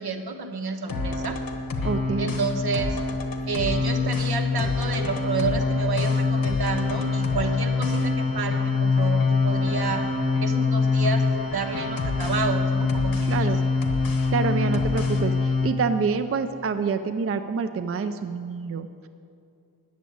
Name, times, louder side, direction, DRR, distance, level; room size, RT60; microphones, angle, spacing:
voice 1, 0.0-1.4 2.2-3.0 3.5-10.1 10.4-11.3 11.5-13.5, right 4 dB, 70° right, 5 dB, 1.1 m, -30 dB
sound 1, 0.9-15.7, left 4 dB, 60° left, 1.2 m, -24 dB
voice 2, 1.8-2.3 13.3-13.6 14.3-19.1, right 5 dB, 35° right, 9 dB, 0.4 m, -27 dB
10.5 x 7.3 x 8.6 m, 2.5 s
wide cardioid pair, 105°, 39 cm